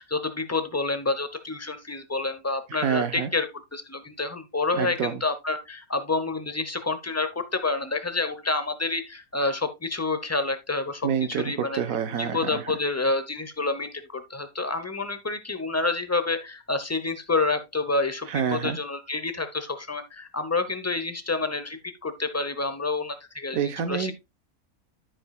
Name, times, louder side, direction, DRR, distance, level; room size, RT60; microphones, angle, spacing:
voice 1, 0.0-3.5 3.7-11.8 12.2-24.1, left 3 dB, 15° left, 0.5 m, -28 dB
voice 2, 2.7-3.3 4.7-5.2 11.0-12.6 18.3-18.8 23.5-24.1, right 8 dB, 75° right, 1.3 m, -27 dB
13.5 x 5.2 x 2.3 m
omnidirectional pair, 1.5 m